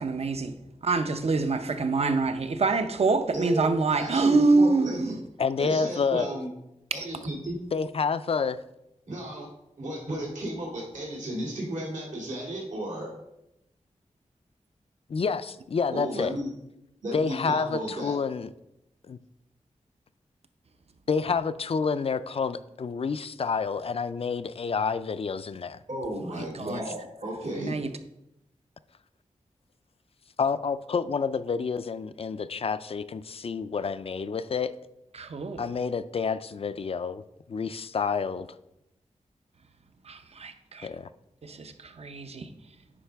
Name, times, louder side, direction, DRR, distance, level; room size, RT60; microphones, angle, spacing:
voice 1, 0.0-5.2 26.3-26.8 27.6-27.9 35.1-35.7 40.0-40.9 41.4-42.5, right 3 dB, 55° right, 0.6 m, -26 dB
voice 2, 3.3-5.1 5.6-6.5 6.9-7.6 9.1-9.5 9.8-13.1 15.9-16.5 17.0-18.2 25.9-27.7, right 1 dB, 75° right, 2.3 m, -34 dB
voice 3, 5.4-6.3 7.7-8.6 15.1-16.3 17.1-18.5 19.1-19.2 21.1-25.8 26.4-26.8 30.4-34.7 35.6-37.2 37.5-38.5 40.8-41.1, left 5 dB, 50° left, 0.4 m, -29 dB
10.0 x 4.8 x 3.4 m
wide cardioid pair, 95°, 13 cm